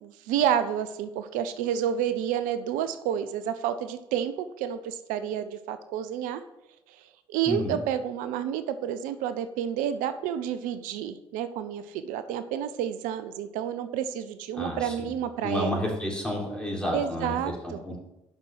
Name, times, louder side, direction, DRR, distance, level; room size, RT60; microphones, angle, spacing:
voice 1, 0.0-6.4 6.9-7.0 7.3-15.7 16.9-17.8, right 9 dB, 75° right, 11 dB, 0.6 m, -30 dB
voice 2, 7.5-7.8 14.5-15.1 15.4-17.4 17.6-18.0, left 1 dB, 5° left, -2 dB, 3.7 m, -31 dB
7.5 x 6.0 x 5.9 m, 0.91 s
hypercardioid pair, 45°, 14 cm